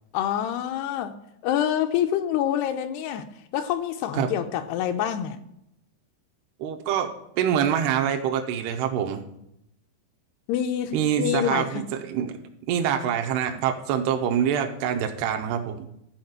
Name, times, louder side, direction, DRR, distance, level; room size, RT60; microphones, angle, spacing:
voice 1, 0.1-1.1 1.4-3.3 3.5-5.4 10.5-11.8, left 10 dB, 80° left, 7 dB, 2.6 m, -26 dB
voice 2, 6.6-9.2 10.9-12.4 12.7-15.9, right 9 dB, 75° right, 5 dB, 2.9 m, -25 dB
14.0 x 4.8 x 7.9 m, 0.79 s
omnidirectional pair, 4.9 m